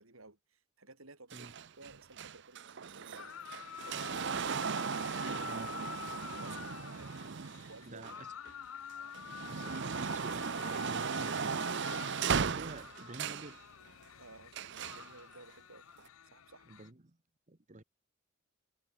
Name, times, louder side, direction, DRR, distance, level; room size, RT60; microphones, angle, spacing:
voice 1, 0.0-1.5 1.8-3.3 3.7-5.6 6.4-7.2 7.7-8.0 14.2-15.9 16.3-16.7, right 3 dB, 80° right, 5.2 m, -56 dB
sound 1, 1.3-8.5 9.0-13.6 14.5-15.1 16.0-16.1, right 6 dB, 55° right, 0.7 m, -37 dB
sound 2, 3.2-16.9, left 8 dB, 80° left, 0.7 m, -48 dB
voice 2, 7.8-8.5 9.4-13.6 16.7-17.2 17.5-17.8, right 2 dB, 35° right, 1.2 m, -49 dB
head